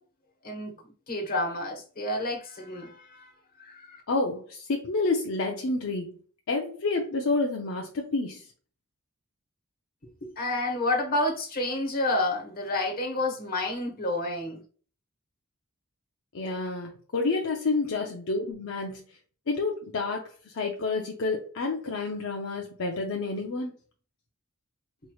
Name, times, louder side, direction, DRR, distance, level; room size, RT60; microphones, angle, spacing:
voice 1, 1.1-3.3 3.6-4.0 10.2-14.6, left 2 dB, 45° left, 1.2 m, -29 dB
voice 2, 4.1-6.1 6.5-8.4 16.3-19.0 19.5-23.7, left 3 dB, 65° left, 0.6 m, -29 dB
4.6 x 3.1 x 2.3 m
head